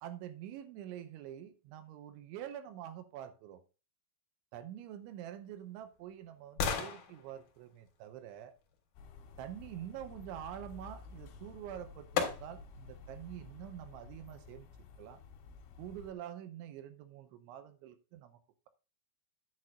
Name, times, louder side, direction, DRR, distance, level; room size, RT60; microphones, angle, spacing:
voice 1, 0.0-3.6 4.5-8.5 9.4-15.2 15.8-18.4, right 11 dB, 80° right, 2.9 m, -46 dB
sound 1, 5.0-9.2 11.3-11.4 12.2-12.8 13.3-13.4, left 7 dB, 60° left, 3.2 m, -39 dB
sound 2, 9.0-16.1, left 4 dB, 80° left, 4.0 m, -52 dB
11.0 x 8.7 x 2.4 m
omnidirectional pair, 5.7 m